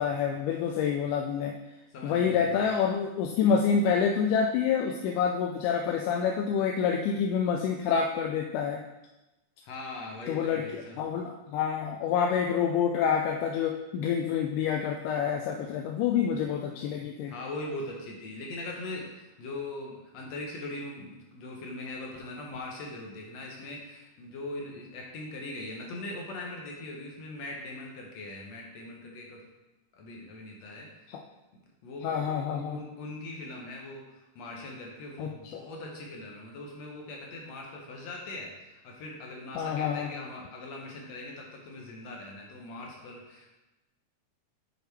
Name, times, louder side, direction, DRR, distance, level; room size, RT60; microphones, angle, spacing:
voice 1, 0.0-1.5 2.0-8.8 10.3-17.3 31.1-31.2 32.0-32.8 35.2-35.6 39.6-40.1, left 7 dB, 85° left, 2 dB, 2.1 m, -27 dB
voice 2, 1.9-2.7 9.6-11.0 17.3-29.4 29.9-31.1 31.8-43.6, left 2 dB, 70° left, -1 dB, 1.8 m, -41 dB
7.0 x 6.3 x 3.3 m, 1.0 s
omnidirectional pair, 3.6 m